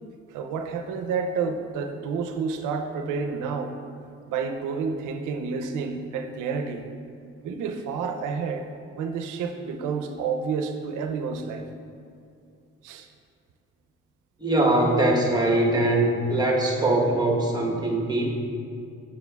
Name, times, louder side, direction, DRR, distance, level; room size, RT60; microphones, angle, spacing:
voice 1, 0.3-3.7 4.3-6.8 7.4-8.6 9.0-11.7 12.8-13.1, right 5 dB, 85° right, 6 dB, 0.5 m, -29 dB
voice 2, 14.4-18.4, right 1 dB, 15° right, -1 dB, 1.0 m, -22 dB
7.0 x 6.6 x 2.3 m, 2.5 s
cardioid pair, 90°, 30 cm